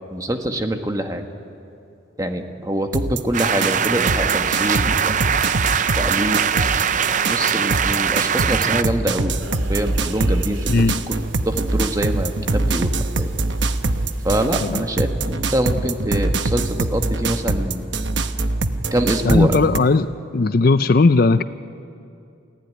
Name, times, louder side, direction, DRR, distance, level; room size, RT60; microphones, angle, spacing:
voice 1, 0.1-1.2 2.2-5.0 6.0-6.5 7.3-9.3 9.7-11.2 11.4-12.9 13.2-13.3 14.2-17.8 18.9-19.5, right 1 dB, 20° right, 5 dB, 1.4 m, -24 dB
sound 1, 2.9-19.8, right 2 dB, 70° right, 1.0 m, -23 dB
sound 2, 3.3-8.8, right 7 dB, 40° right, 0.5 m, -21 dB
sound 3, 9.4-14.8, right 1 dB, 85° right, 2.3 m, -34 dB
voice 2, 19.3-20.1 20.3-21.4, left 3 dB, 50° left, 13 dB, 0.5 m, -16 dB
28.5 x 16.0 x 9.5 m, 2.6 s
head